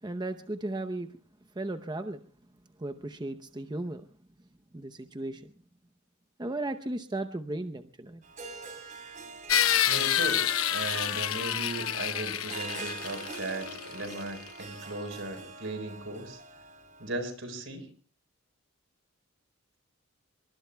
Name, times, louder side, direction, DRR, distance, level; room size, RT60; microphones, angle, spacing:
voice 1, 0.0-1.2 1.5-2.2 2.8-4.1 4.7-5.5 6.4-8.2, right 2 dB, 20° right, 8 dB, 0.7 m, -35 dB
Harp, 8.2-17.2, right 3 dB, 40° right, 3.9 m, -44 dB
sound 1, 9.5-14.2, left 10 dB, 85° left, 0.9 m, -28 dB
voice 2, 9.9-16.4 17.0-17.9, right 2 dB, 70° right, 7 dB, 4.6 m, -37 dB
26.5 x 23.5 x 2.3 m, 0.40 s
head